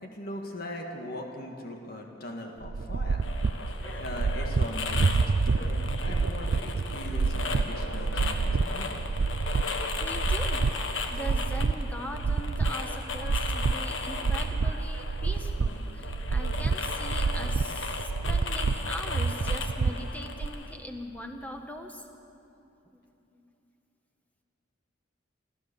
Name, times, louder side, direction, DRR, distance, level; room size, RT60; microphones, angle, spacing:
voice 1, 0.0-3.2 4.0-5.2 5.5-9.1, left 1 dB, 50° left, 2 dB, 1.8 m, -40 dB
sound 1, 2.6-20.5, right 4 dB, 80° right, 0.5 m, -28 dB
sound 2, 3.2-20.7, left 4 dB, 80° left, 1.5 m, -37 dB
voice 2, 3.8-4.1 10.0-10.6 11.1-22.1 22.6-23.0 23.3-23.4, equal, 10° left, 3 dB, 1.5 m, -41 dB
29.5 x 12.5 x 6.9 m, 2.9 s
head